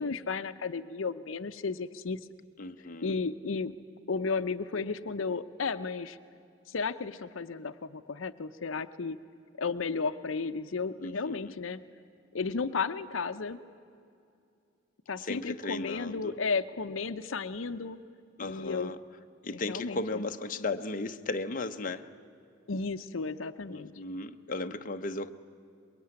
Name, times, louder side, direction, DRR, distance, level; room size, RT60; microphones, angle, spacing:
voice 1, 0.0-2.2 3.0-3.7 4.1-6.2 6.7-9.2 9.6-11.8 12.3-13.6 15.1-18.0 18.4-18.9 19.5-20.2 22.7-24.0, left 4 dB, 75° left, 10 dB, 0.7 m, -33 dB
voice 2, 2.6-3.2 11.0-11.6 15.2-16.4 18.4-19.0 19.4-22.1 23.7-25.3, left 2 dB, 45° left, 6 dB, 0.9 m, -36 dB
23.5 x 22.0 x 9.7 m, 2.5 s
head